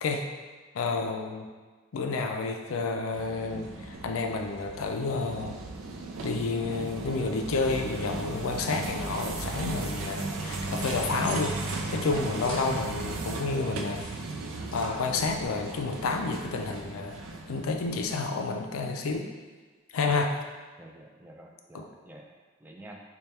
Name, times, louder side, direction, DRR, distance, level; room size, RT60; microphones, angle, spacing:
voice 1, 0.7-1.5 1.9-5.6 6.2-14.1 14.7-17.2 17.5-19.3 19.9-20.3 21.7-21.9, left 3 dB, 80° left, 4 dB, 0.4 m, -30 dB
sound 1, 3.1-18.2, right 2 dB, 90° right, 0.4 m, -36 dB
sound 2, 10.7-13.4 13.8-15.5, left 1 dB, 25° left, 0.9 m, -44 dB
voice 2, 20.8-23.0, right 1 dB, 10° right, 0 dB, 0.3 m, -49 dB
3.3 x 2.3 x 4.2 m, 1.4 s
head